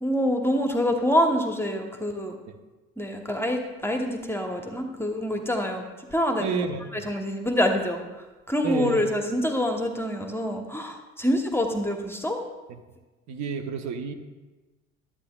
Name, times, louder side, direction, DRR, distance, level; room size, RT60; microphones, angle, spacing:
voice 1, 0.0-2.4 3.0-5.8 6.1-6.6 6.9-12.4, equal, 5° left, 3 dB, 1.0 m, -26 dB
voice 2, 6.4-7.1 8.6-9.0 13.3-14.1, right 5 dB, 45° right, 6 dB, 1.0 m, -30 dB
11.5 x 8.8 x 2.3 m, 1.2 s
hypercardioid pair, 70°, 38 cm